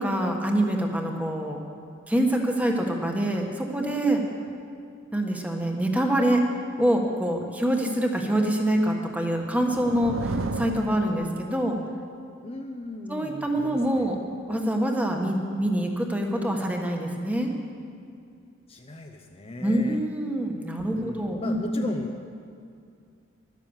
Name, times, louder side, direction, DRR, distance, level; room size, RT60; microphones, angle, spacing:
voice 1, 0.0-1.6 2.1-4.2 5.1-6.4 6.8-11.8 13.1-14.2 14.5-17.5 19.6-21.9, right 1 dB, 10° right, 2 dB, 1.3 m, -25 dB
sound 1, 8.9-11.8, right 3 dB, 80° right, 0.6 m, -33 dB
voice 2, 12.4-14.1 18.7-20.0 20.9-22.1, left 1 dB, 30° left, 3 dB, 0.7 m, -37 dB
12.0 x 10.5 x 7.2 m, 2.4 s
head